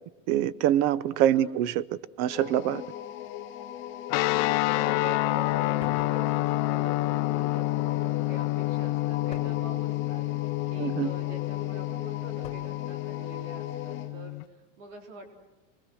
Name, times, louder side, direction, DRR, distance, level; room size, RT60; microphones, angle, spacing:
voice 1, 0.3-1.8 2.2-2.8 10.8-11.1, right 11 dB, 40° right, 0.7 m, -25 dB
sound 1, 2.3-14.2, left 11 dB, 30° left, 2.0 m, -39 dB
sound 2, 4.1-14.4, left 20 dB, 45° left, 0.8 m, -28 dB
voice 2, 4.7-15.3, right 2 dB, 70° right, 4.1 m, -46 dB
sound 3, 5.8-6.1 7.7-8.1 9.3-9.7 11.1-11.5 12.4-12.8, left 5 dB, 15° left, 3.2 m, -47 dB
26.0 x 21.0 x 6.3 m
supercardioid pair, 150°, 39 cm